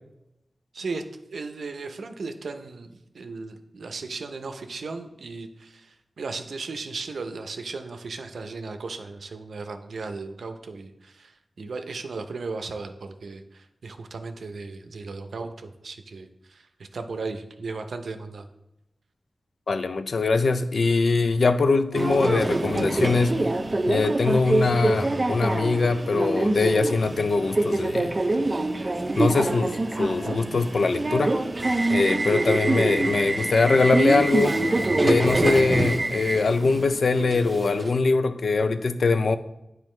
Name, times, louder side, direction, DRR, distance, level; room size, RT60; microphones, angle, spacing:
voice 1, 1.3-18.5, right 4 dB, 85° right, 0.6 m, -36 dB
voice 2, 19.7-23.4 23.9-28.2 29.2-31.4 31.9-34.6 35.0-39.4, left 3 dB, 75° left, 0.4 m, -22 dB
Subway metro underground, 21.9-37.9, right 2 dB, 35° right, 0.4 m, -25 dB
9.0 x 4.6 x 3.2 m
wide cardioid pair, 85°, 0 cm